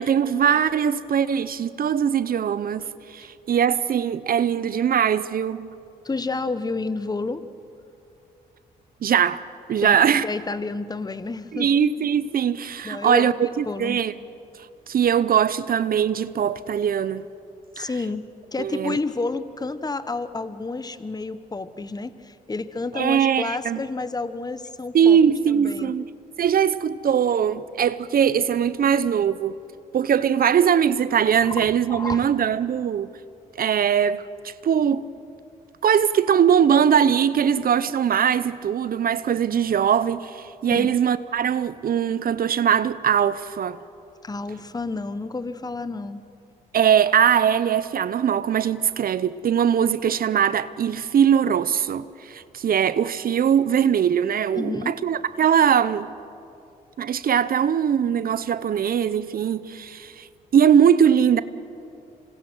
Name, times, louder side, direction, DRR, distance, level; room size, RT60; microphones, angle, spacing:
voice 1, 0.0-5.7 9.0-9.4 9.7-10.3 11.5-14.1 14.9-17.2 17.8-17.9 18.6-19.0 22.9-23.8 24.9-26.1 26.4-29.6 29.9-33.1 33.6-35.0 35.8-43.8 46.7-56.1 57.0-60.3 60.5-61.4, right 8 dB, 55° right, 0.7 m, -21 dB
voice 2, 6.0-7.5 9.8-10.0 10.2-11.7 12.8-13.3 13.7-14.0 17.7-25.2 25.5-25.9 31.4-32.3 40.7-41.0 44.2-46.2 54.5-55.0, left 3 dB, 20° left, 1.1 m, -30 dB
27.0 x 24.5 x 6.3 m
supercardioid pair, 60°, 18 cm